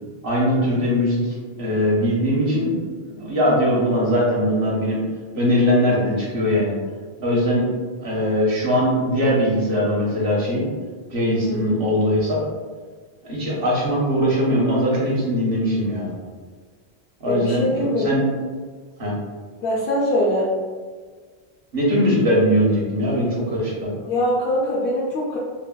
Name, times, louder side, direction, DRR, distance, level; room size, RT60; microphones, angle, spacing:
voice 1, 0.2-2.7 3.1-5.0 5.3-6.7 7.2-7.7 8.0-10.7 11.1-12.4 13.2-16.1 17.2-18.3 19.0-19.1 21.7-23.9, equal, 60° right, -5 dB, 1.1 m, -20 dB
voice 2, 11.4-11.8 17.3-18.1 19.6-20.5 24.1-25.4, equal, 65° left, -6 dB, 0.8 m, -22 dB
3.9 x 2.0 x 2.2 m, 1.5 s
omnidirectional pair, 1.1 m